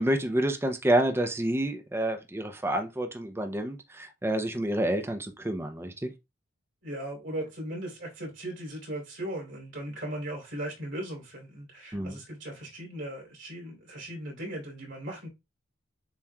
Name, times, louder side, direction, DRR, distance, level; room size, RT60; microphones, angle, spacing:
voice 1, 0.0-6.1 11.9-12.2, right 1 dB, 10° right, 0.5 m, -28 dB
voice 2, 6.8-15.3, right 1 dB, 65° right, 2.9 m, -38 dB
7.1 x 3.0 x 2.2 m
head